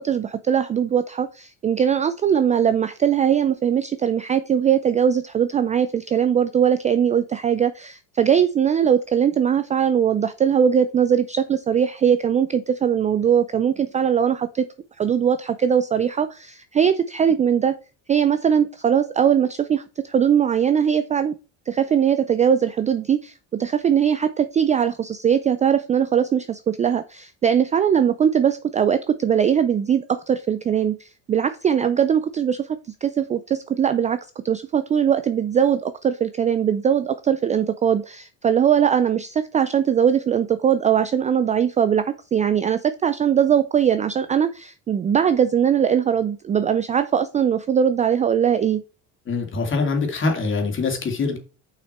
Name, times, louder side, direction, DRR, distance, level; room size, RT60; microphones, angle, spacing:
voice 1, 0.0-14.7 15.0-17.7 18.1-21.3 21.7-32.7 33.0-34.2 34.4-48.8, right 8 dB, 20° right, 11 dB, 0.3 m, -20 dB
voice 2, 49.3-51.4, left 4 dB, 30° left, 3 dB, 2.5 m, -24 dB
6.6 x 5.8 x 4.3 m, 0.33 s
cardioid pair, 130°, 37 cm